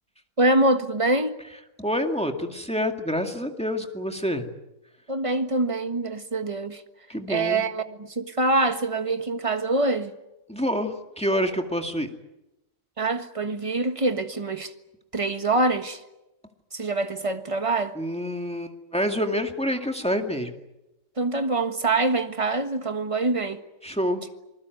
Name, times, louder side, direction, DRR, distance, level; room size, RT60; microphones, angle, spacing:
voice 1, 0.4-1.4 5.1-6.8 7.3-10.1 13.0-14.7 15.1-16.0 16.7-17.9 21.2-23.6, right 2 dB, 25° right, 1.5 m, -25 dB
voice 2, 1.8-4.5 7.1-7.7 10.5-12.1 18.0-20.5 23.8-24.2, equal, 5° left, 2.1 m, -27 dB
27.0 x 20.0 x 9.3 m
omnidirectional pair, 1.5 m